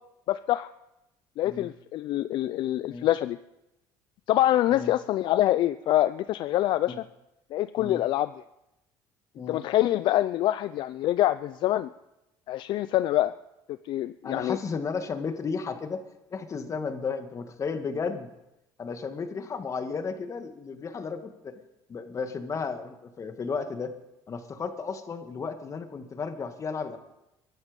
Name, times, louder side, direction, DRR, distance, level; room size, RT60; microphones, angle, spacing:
voice 1, 0.3-0.7 1.4-3.4 4.3-7.0 7.5-8.3 9.5-11.9 12.5-13.3 13.9-14.6, left 14 dB, 65° left, 14 dB, 0.5 m, -25 dB
voice 2, 14.2-16.0 16.3-18.3 18.8-21.6 21.9-23.9 24.3-27.0, left 5 dB, 35° left, 7 dB, 2.1 m, -33 dB
22.5 x 12.0 x 5.3 m, 0.92 s
supercardioid pair, 90°, 9 cm